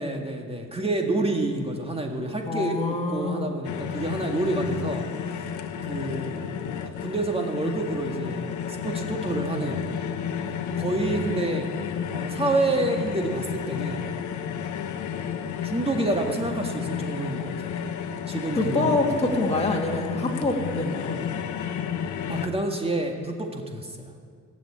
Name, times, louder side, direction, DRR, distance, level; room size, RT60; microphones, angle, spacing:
voice 1, 0.0-5.1 5.8-6.4 6.8-9.9 10.8-11.7 12.1-14.1 15.6-17.7 18.3-19.1 22.3-24.1, right 2 dB, 20° right, 2 dB, 1.8 m, -28 dB
voice 2, 2.5-3.5 18.6-21.3, left 2 dB, 20° left, -1 dB, 2.3 m, -26 dB
sound 1, 3.6-22.5, left 7 dB, 75° left, 1.0 m, -32 dB
17.0 x 7.3 x 8.6 m, 2.1 s
cardioid pair, 90°, 30 cm